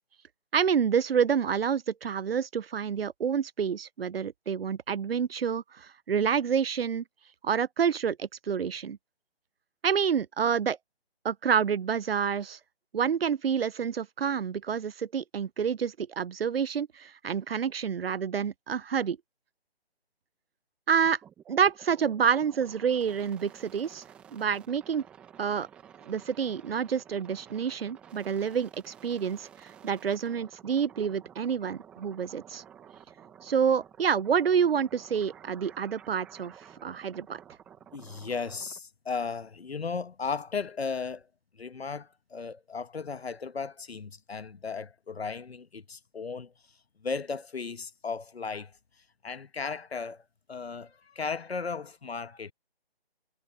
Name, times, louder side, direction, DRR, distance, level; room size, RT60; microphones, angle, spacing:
voice 1, 0.5-7.0 7.4-9.0 9.8-10.8 11.2-12.6 12.9-19.2 20.9-21.2 21.5-24.0 24.3-25.0 25.4-25.7 26.0-32.6 33.4-36.5 36.8-37.4, right 7 dB, 70° right, 0.6 m, -28 dB
sound 1, 21.0-38.8, right 9 dB, 5° right, 0.8 m, -52 dB
voice 2, 37.9-41.3 41.5-46.5 47.0-48.7 49.2-52.5, left 5 dB, 80° left, 1.4 m, -36 dB
figure-of-eight pair, 160°, 31 cm